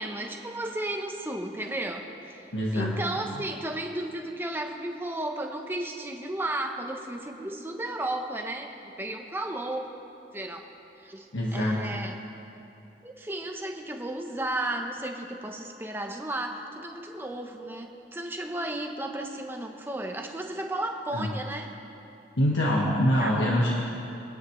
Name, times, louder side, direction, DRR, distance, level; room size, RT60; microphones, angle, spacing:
voice 1, 0.0-2.5 2.7-8.7 9.0-9.9 10.3-10.7 11.0-12.2 13.0-21.7 23.2-23.3, right 1 dB, 10° right, 3 dB, 0.9 m, -34 dB
voice 2, 2.5-3.0 11.3-11.9 21.1-21.3 22.4-23.7, equal, 85° left, -4 dB, 1.5 m, -24 dB
24.5 x 10.0 x 3.2 m, 2.8 s
head